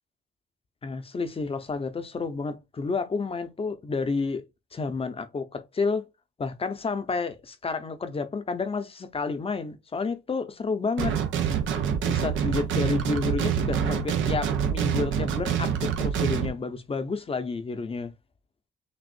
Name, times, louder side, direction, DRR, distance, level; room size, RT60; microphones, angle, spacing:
voice 1, 0.8-4.4 4.7-6.1 6.4-11.2 12.1-18.1, left 4 dB, 30° left, 0.7 m, -30 dB
sound 1, 11.0-16.5, right 8 dB, 75° right, 0.8 m, -26 dB
6.2 x 2.5 x 2.5 m
cardioid pair, 90°, 20 cm